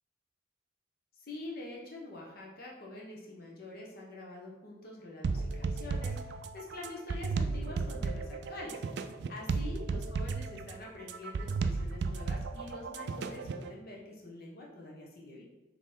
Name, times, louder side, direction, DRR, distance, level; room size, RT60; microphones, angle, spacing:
voice 1, 1.2-8.8 9.3-15.4, left 2 dB, 50° left, -3 dB, 0.9 m, -46 dB
sound 1, 5.2-13.7, right 4 dB, 60° right, 0.3 m, -34 dB
4.2 x 3.0 x 3.7 m, 1.1 s
head